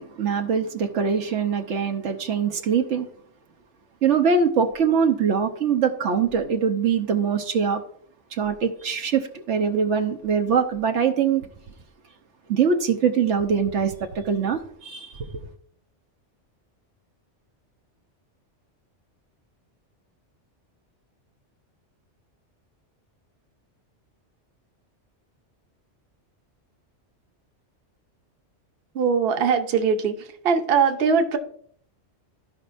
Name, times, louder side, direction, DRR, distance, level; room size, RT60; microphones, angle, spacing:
voice 1, 0.0-3.1 4.0-7.8 8.3-11.5 12.5-15.4, right 6 dB, 85° right, 1.1 m, -23 dB
voice 2, 28.9-31.4, right 6 dB, 60° right, 1.0 m, -21 dB
14.0 x 5.3 x 2.5 m
omnidirectional pair, 1.2 m